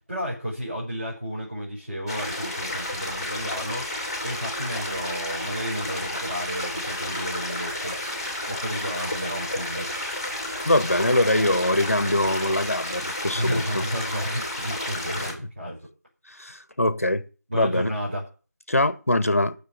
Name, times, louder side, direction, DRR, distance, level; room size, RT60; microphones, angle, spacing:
voice 1, 0.1-3.9 4.2-8.0 8.4-9.9 13.3-15.8 17.5-18.2, equal, 35° right, 5.3 m, -32 dB
sound 1, 2.1-15.3, left 1 dB, 20° left, 2.8 m, -31 dB
voice 2, 10.6-13.8 16.3-17.2 17.5-17.9 18.7-19.5, left 1 dB, 50° left, 1.2 m, -23 dB
9.5 x 7.0 x 8.2 m
figure-of-eight pair, 175°, 10 cm